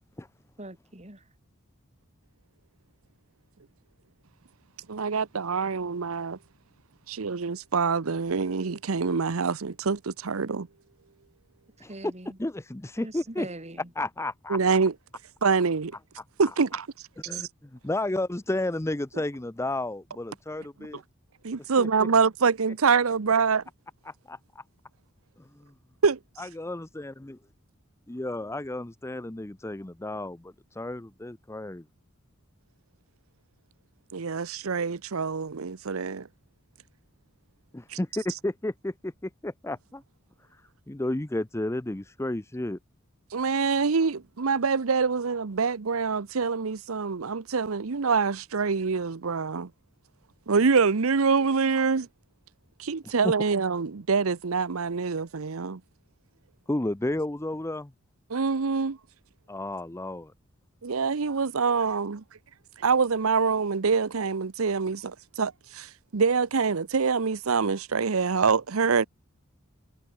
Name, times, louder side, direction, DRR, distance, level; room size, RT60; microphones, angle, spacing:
voice 1, 0.6-1.3 11.8-12.4 13.0-13.9, right 1 dB, 30° right, 5.1 m, -42 dB
voice 2, 4.9-6.4 7.1-10.7 14.5-14.9 15.4-15.9 16.4-16.9 17.3-17.4 21.4-23.6 26.0-26.2 34.1-36.3 37.9-38.0 43.3-49.7 50.5-52.1 52.8-55.8 58.3-59.0 60.8-62.2 62.8-69.1, right 5 dB, 80° right, 0.8 m, -25 dB
voice 3, 12.4-13.5 14.0-14.6 17.3-21.0 21.8-22.1 24.1-24.6 25.4-25.7 26.4-27.4 28.1-31.8 37.7-40.0 40.9-42.8 53.0-53.3 56.7-57.9 59.5-60.3, left 1 dB, 15° left, 0.6 m, -32 dB
head